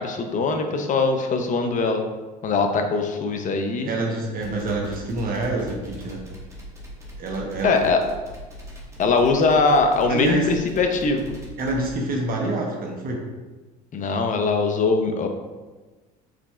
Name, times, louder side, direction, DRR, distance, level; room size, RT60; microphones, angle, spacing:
voice 1, 0.0-2.0 2.4-3.9 7.6-8.0 9.0-11.3 13.9-15.3, left 3 dB, 40° left, 5 dB, 0.7 m, -21 dB
voice 2, 3.8-6.2 7.2-7.9 10.1-10.5 11.6-13.2, right 2 dB, 45° right, 0 dB, 1.1 m, -26 dB
sound 1, 4.4-11.9, equal, 15° right, 1.4 m, -40 dB
4.9 x 4.0 x 2.4 m, 1.2 s
hypercardioid pair, 80°, 20 cm